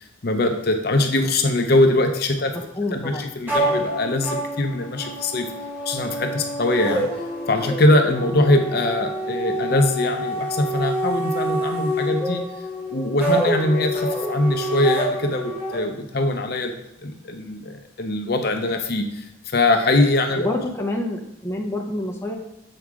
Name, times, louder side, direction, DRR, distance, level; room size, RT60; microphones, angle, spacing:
voice 1, 0.2-2.5 2.9-5.5 5.9-7.0 7.5-12.4 12.9-16.7 17.0-20.5, left 2 dB, 55° left, 4 dB, 0.7 m, -22 dB
voice 2, 2.5-3.3 3.6-3.8 20.4-22.4, left 1 dB, 10° left, 0 dB, 0.7 m, -28 dB
sound 1, 3.5-15.8, equal, 10° right, 1.6 m, -27 dB
7.8 x 4.7 x 3.7 m, 0.86 s
head